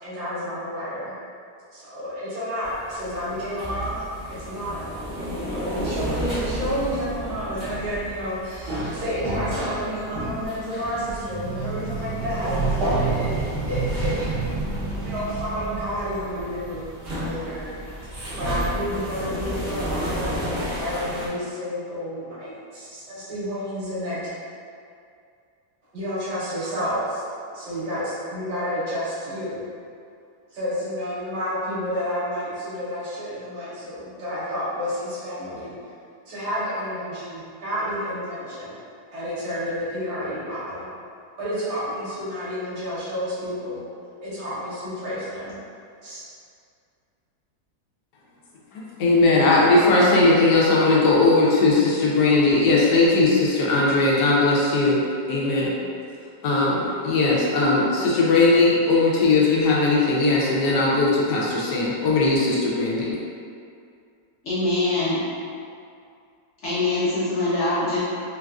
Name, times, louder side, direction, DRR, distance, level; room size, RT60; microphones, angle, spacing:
voice 1, 0.0-1.1 1.7-4.8 5.1-14.3 15.0-16.8 17.2-17.8 18.1-24.2 25.9-27.2 27.5-29.6 30.5-35.8 36.3-38.7 39.1-40.9 41.4-43.8 44.2-45.6 46.0-46.2, equal, 75° right, -11 dB, 1.7 m, -30 dB
sound 1, 2.6-21.3, right 2 dB, 50° right, 0.7 m, -30 dB
voice 2, 49.0-55.7 56.4-63.1, left 3 dB, 80° left, -4 dB, 1.2 m, -19 dB
voice 3, 64.4-65.3 66.6-68.0, left 2 dB, 50° left, -12 dB, 1.1 m, -23 dB
3.8 x 2.4 x 2.3 m, 2.4 s
omnidirectional pair, 1.8 m